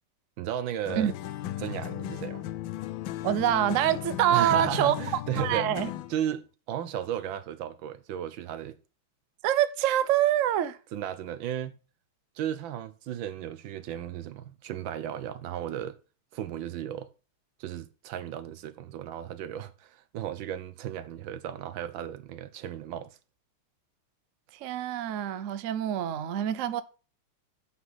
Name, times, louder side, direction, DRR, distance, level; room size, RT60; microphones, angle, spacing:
voice 1, 0.4-1.1 1.6-2.4 4.3-5.7 6.1-8.8 10.9-11.8 12.3-16.0 16.3-17.1 17.6-23.2, right 10 dB, 70° right, 1.5 m, -35 dB
sound 1, 0.9-6.2, left 13 dB, 75° left, 1.3 m, -36 dB
voice 2, 3.2-4.9 5.4-5.9 9.4-10.8 24.6-26.8, right 11 dB, 90° right, 0.6 m, -25 dB
8.0 x 5.9 x 5.7 m
omnidirectional pair, 2.3 m